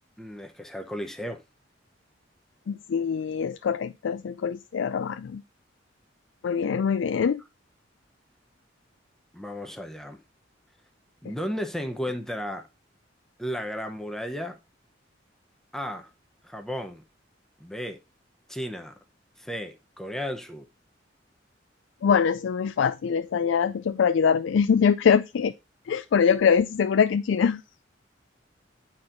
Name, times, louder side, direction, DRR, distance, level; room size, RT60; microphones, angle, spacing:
voice 1, 0.2-1.4 9.3-10.2 11.2-12.7 13.4-14.6 15.7-16.1 16.4-17.0 17.6-18.0 18.5-18.9 19.4-20.7, equal, 5° left, 0.8 m, -34 dB
voice 2, 2.7-5.4 6.4-7.4 22.0-25.5 25.9-27.6, left 6 dB, 80° left, 0.4 m, -23 dB
9.5 x 4.4 x 3.8 m
head